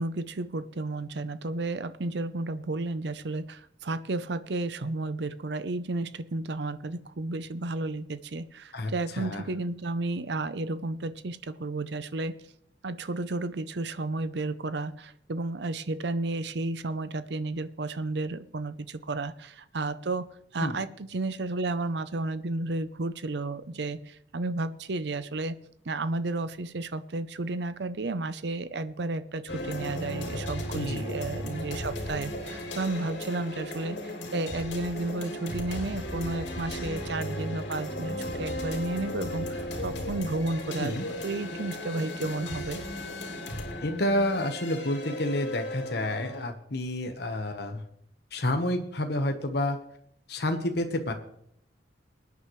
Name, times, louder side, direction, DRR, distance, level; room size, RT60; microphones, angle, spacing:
voice 1, 0.0-12.4 12.8-25.6 25.8-42.8, right 2 dB, 65° right, 14 dB, 0.7 m, -32 dB
voice 2, 8.7-9.4 20.6-20.8 30.7-31.0 40.8-41.1 43.8-47.8 48.3-49.8 50.3-51.1, left 1 dB, 65° left, 6 dB, 1.2 m, -29 dB
sound 1, 29.5-46.4, left 1 dB, 85° left, 3.0 m, -36 dB
22.5 x 9.5 x 3.2 m, 0.70 s
head